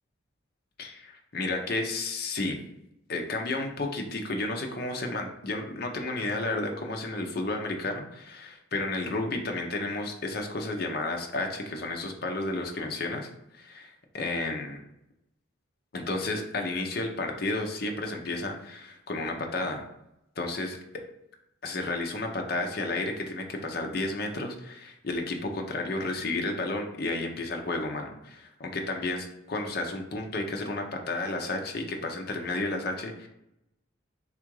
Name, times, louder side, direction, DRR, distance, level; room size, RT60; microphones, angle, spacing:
voice 1, 0.8-2.6 3.1-14.8 15.9-19.8 20.4-20.8 21.6-33.3, left 2 dB, 50° left, 2 dB, 0.6 m, -32 dB
3.6 x 2.4 x 4.6 m, 0.83 s
head